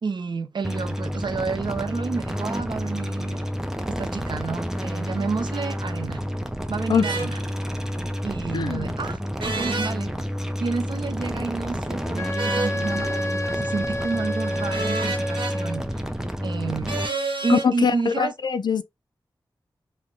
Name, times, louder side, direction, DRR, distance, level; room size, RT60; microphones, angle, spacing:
voice 1, 0.0-3.5 3.9-6.2 6.7-7.4 8.2-10.1 10.6-16.0 16.4-17.0 17.4-18.3, right 4 dB, 65° right, 0.6 m, -30 dB
sound 1, 0.6-17.1, equal, 5° right, 0.6 m, -29 dB
sound 2, 7.0-7.3 9.4-9.9 12.4-12.8 14.7-15.5 16.9-17.7, right 3 dB, 90° right, 1.3 m, -28 dB
voice 2, 8.5-8.9 17.5-18.8, left 6 dB, 60° left, 0.4 m, -22 dB
Wind instrument woodwind instrument, 12.2-15.9, left 1 dB, 35° left, 0.7 m, -30 dB
2.9 x 2.1 x 3.7 m
wide cardioid pair, 55°, 8 cm